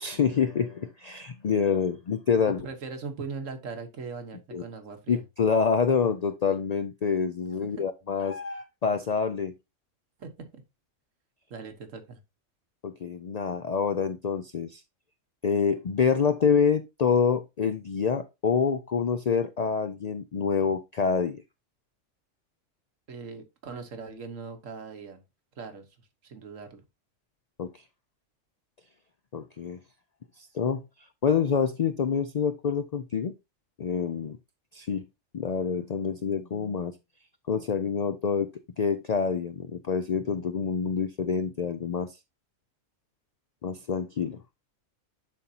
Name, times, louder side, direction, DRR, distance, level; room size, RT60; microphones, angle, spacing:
voice 1, 0.0-2.6 4.5-4.6 5.1-9.5 12.8-14.8 15.4-21.4 27.6-27.7 29.3-29.8 30.4-30.8 31.2-33.3 33.8-34.4 34.7-35.0 35.3-37.0 37.5-38.5 38.8-42.2 43.6-44.4, left 6 dB, 85° left, 0.3 m, -27 dB
voice 2, 2.6-5.2 7.8-7.9 10.2-10.6 11.5-12.2 23.1-25.2 25.6-25.9 26.2-26.8, right 4 dB, 80° right, 1.6 m, -40 dB
11.0 x 4.1 x 2.8 m
omnidirectional pair, 1.3 m